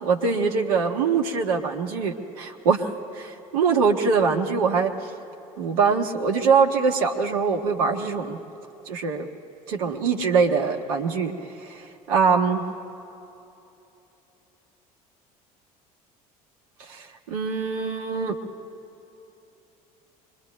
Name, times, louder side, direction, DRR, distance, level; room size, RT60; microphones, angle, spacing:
voice 1, 0.0-2.9 3.1-4.9 5.6-8.4 8.9-9.3 9.7-11.3 11.6-12.6 16.9-18.4, right 5 dB, 70° right, 3 dB, 1.2 m, -23 dB
26.0 x 22.0 x 2.3 m, 2.9 s
figure-of-eight pair, 60°, 19 cm